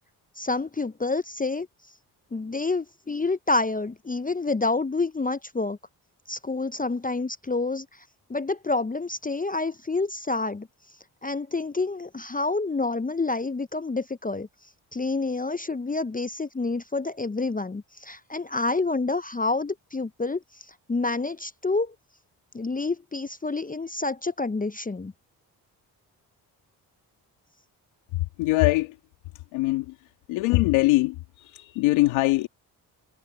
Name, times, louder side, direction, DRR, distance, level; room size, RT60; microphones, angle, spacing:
voice 1, 0.4-1.7 2.3-5.8 6.3-7.9 8.3-10.7 11.2-14.5 14.9-20.4 20.9-21.9 22.5-25.1, left 3 dB, 20° left, 0.8 m, -28 dB
voice 2, 28.4-28.9 29.5-29.9 30.3-32.5, left 20 dB, 90° left, 2.0 m, -22 dB
hypercardioid pair, 40°, 46 cm